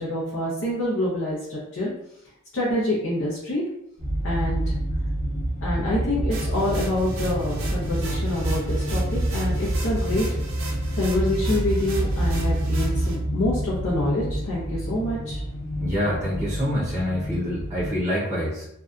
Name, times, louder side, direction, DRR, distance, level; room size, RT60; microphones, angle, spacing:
voice 1, 0.0-1.9 2.5-3.6 4.2-4.7 5.6-10.3 10.9-15.4, left 1 dB, 65° left, -6 dB, 0.7 m, -26 dB
sound 1, 4.0-18.0, right 1 dB, 20° left, 1.0 m, -27 dB
sound 2, 6.3-13.2, right 2 dB, 65° right, 0.5 m, -37 dB
voice 2, 15.8-18.6, equal, 10° right, -11 dB, 0.5 m, -26 dB
2.6 x 2.2 x 2.4 m, 0.80 s
head